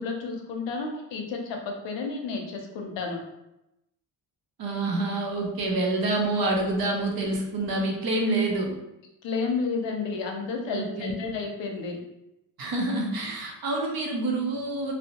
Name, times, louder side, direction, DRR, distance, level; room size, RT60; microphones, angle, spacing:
voice 1, 0.0-3.2 9.2-12.0, left 4 dB, 75° left, 2 dB, 0.6 m, -31 dB
voice 2, 4.6-8.8 10.7-11.1 12.6-14.9, right 2 dB, 55° right, 0 dB, 0.6 m, -27 dB
2.6 x 2.0 x 2.8 m, 0.89 s
wide cardioid pair, 165°, 44 cm